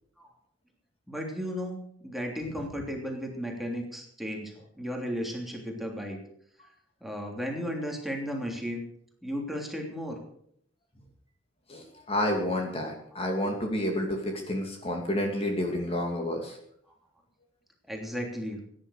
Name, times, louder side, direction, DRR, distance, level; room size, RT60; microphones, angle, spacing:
voice 1, 1.1-6.2 7.0-8.8 9.2-10.2 17.9-18.6, equal, ahead, 0 dB, 3.2 m, -34 dB
voice 2, 11.7-16.6, left 1 dB, 30° left, 1 dB, 2.5 m, -30 dB
17.0 x 10.5 x 6.7 m, 0.69 s
head